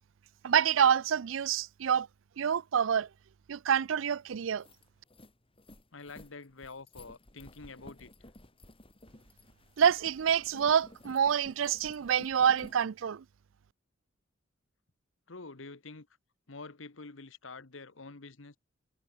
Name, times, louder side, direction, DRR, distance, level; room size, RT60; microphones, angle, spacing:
voice 1, 0.4-2.1 2.4-3.1 3.5-4.6 9.8-13.2, right 8 dB, 80° right, 0.4 m, -27 dB
sound 1, 4.0-4.1 4.4-12.8, left 1 dB, 30° left, 4.1 m, -54 dB
voice 2, 5.9-8.1 15.3-16.1 16.5-18.6, left 3 dB, 75° left, 1.4 m, -47 dB
head